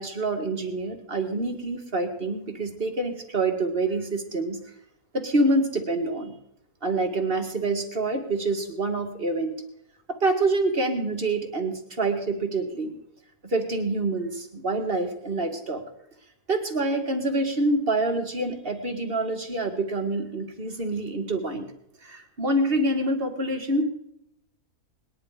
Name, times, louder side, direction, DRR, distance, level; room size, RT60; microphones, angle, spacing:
voice 1, 0.0-4.6 5.1-6.3 6.8-9.6 10.1-13.0 13.4-15.8 16.5-21.7 22.0-23.8, right 2 dB, 35° right, 4 dB, 2.2 m, -26 dB
20.5 x 10.5 x 5.0 m, 0.80 s
omnidirectional pair, 1.7 m